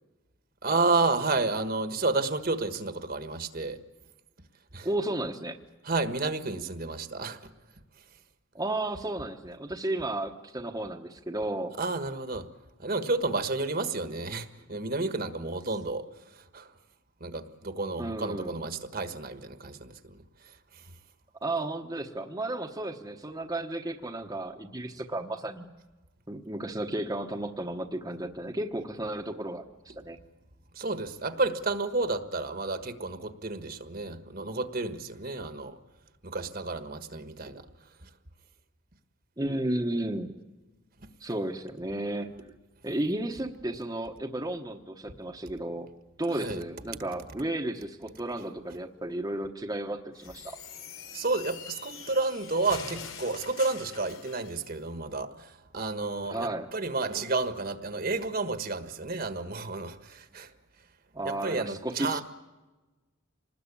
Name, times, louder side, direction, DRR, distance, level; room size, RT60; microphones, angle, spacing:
voice 1, 0.6-3.8 4.7-4.9 5.9-7.4 11.8-12.4 12.8-16.0 16.5-16.7 17.2-20.2 30.7-35.8 36.2-37.6 46.3-46.6 51.1-60.5 61.2-62.2, right 3 dB, 45° right, 9 dB, 1.5 m, -31 dB
voice 2, 4.8-5.6 8.5-11.8 18.0-18.6 21.4-25.7 26.3-30.2 39.4-40.3 41.2-42.4 42.8-45.9 46.2-50.6 56.2-56.7 61.1-62.2, right 1 dB, 20° right, 2 dB, 1.1 m, -33 dB
sound 1, 50.2-54.6, left 6 dB, 90° left, 3.4 m, -44 dB
26.0 x 20.0 x 8.5 m, 1.2 s
head